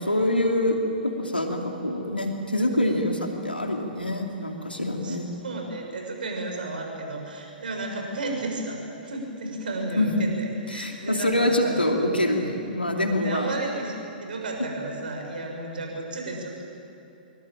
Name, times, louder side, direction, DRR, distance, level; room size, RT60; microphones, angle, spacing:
voice 1, 0.0-5.3 10.0-10.2 10.7-13.5, left 1 dB, 90° left, 3 dB, 2.8 m, -25 dB
voice 2, 5.4-11.8 13.0-16.6, right 2 dB, 65° right, 1 dB, 7.0 m, -33 dB
26.5 x 23.5 x 8.9 m, 2.8 s
figure-of-eight pair, 110°, 5 cm